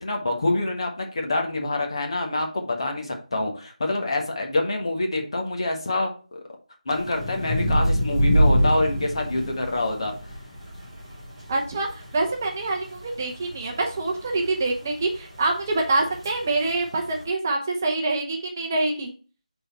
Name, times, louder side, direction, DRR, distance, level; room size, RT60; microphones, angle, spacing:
voice 1, 0.0-6.1 6.8-10.1, left 2 dB, 40° left, 2 dB, 1.4 m, -26 dB
sound 1, 6.9-17.2, equal, 5° right, 3.2 m, -27 dB
voice 2, 11.5-19.1, right 2 dB, 20° right, 1 dB, 0.7 m, -26 dB
6.6 x 4.0 x 4.3 m, 0.37 s
figure-of-eight pair, 160°, 4 cm